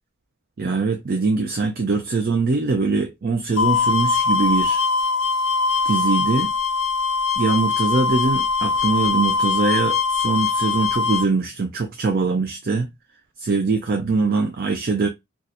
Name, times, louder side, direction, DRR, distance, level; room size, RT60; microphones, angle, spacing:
voice 1, 0.6-4.9 5.8-6.5 7.4-12.9 13.4-15.1, right 4 dB, 45° right, 0.4 m, -22 dB
sound 1, 3.6-11.3, left 5 dB, 80° left, 0.5 m, -21 dB
2.6 x 2.4 x 4.0 m
head